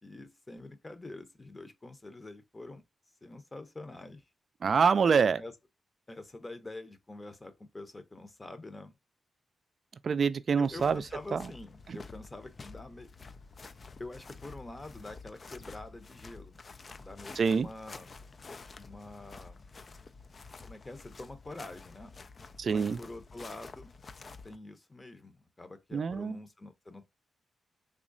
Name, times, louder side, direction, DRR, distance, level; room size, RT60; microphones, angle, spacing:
voice 1, 0.0-2.8 3.2-4.2 5.1-5.5 6.1-9.0 10.6-13.1 14.0-16.6 17.0-18.1 18.8-19.6 20.6-22.1 22.7-23.9 24.4-27.1, left 2 dB, 25° left, 0.8 m, -46 dB
voice 2, 4.6-5.4 10.0-11.0 11.3-11.5 11.9-12.0 17.4-17.7 22.6-23.0 25.9-26.4, right 6 dB, 60° right, 0.3 m, -26 dB
sound 1, 10.6-24.6, left 4 dB, 45° left, 0.3 m, -50 dB
3.6 x 3.0 x 2.5 m
cardioid pair, 60°, 0 cm